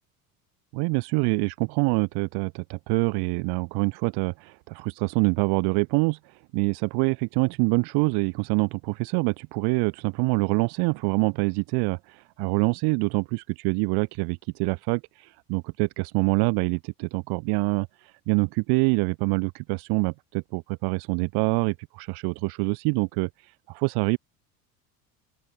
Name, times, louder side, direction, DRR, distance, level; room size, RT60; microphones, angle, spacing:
voice 1, 0.7-24.2, right 31 dB, 65° right, 0.8 m, -26 dB
open air
supercardioid pair, 90°, 43 cm